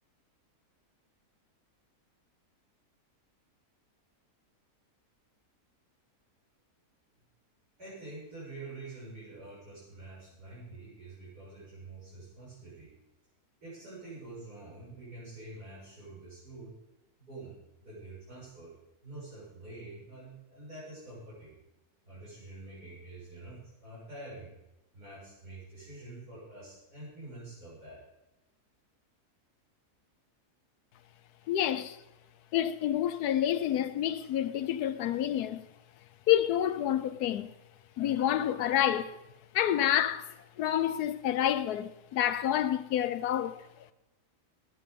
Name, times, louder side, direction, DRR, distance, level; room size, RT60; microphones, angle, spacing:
voice 1, 7.8-12.9 13.6-16.7 17.2-18.8 19.0-21.5 22.0-24.6 24.9-28.0, right 2 dB, 85° right, 8.0 m, -47 dB
voice 2, 31.5-32.0 32.5-35.6 36.3-37.5 38.0-39.2 39.5-43.6, left 11 dB, 80° left, 1.3 m, -28 dB
19.0 x 9.7 x 5.2 m
omnidirectional pair, 1.6 m